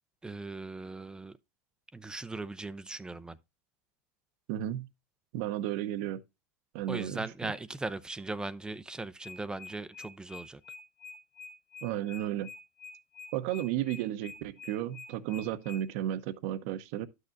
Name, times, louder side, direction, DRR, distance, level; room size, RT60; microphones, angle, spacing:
voice 1, 0.2-1.3 1.9-3.4 6.9-10.6, right 2 dB, 10° right, 0.5 m, -39 dB
voice 2, 4.5-4.9 5.3-6.2 6.7-7.5 11.8-12.5 13.3-17.1, right 12 dB, 65° right, 0.8 m, -33 dB
sound 1, 9.2-15.8, left 4 dB, 15° left, 1.4 m, -47 dB
11.5 x 6.5 x 2.6 m
supercardioid pair, 110°, 8 cm